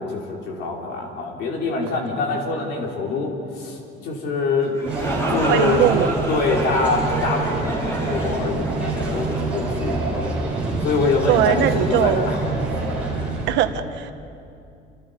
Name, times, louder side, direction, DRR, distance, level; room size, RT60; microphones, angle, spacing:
voice 1, 0.0-4.8 5.3-5.8 6.3-10.0 10.8-12.5, left 3 dB, 65° left, -1 dB, 5.2 m, -24 dB
sound 1, 4.6-10.3, right 1 dB, 15° left, 6.4 m, -29 dB
sound 2, 4.8-13.5, right 2 dB, 5° right, 7.3 m, -26 dB
voice 2, 5.5-6.1 11.3-12.3 13.5-14.1, right 11 dB, 70° right, 7 dB, 1.6 m, -20 dB
30.0 x 29.5 x 5.5 m, 2.6 s
cardioid pair, 175°, 19 cm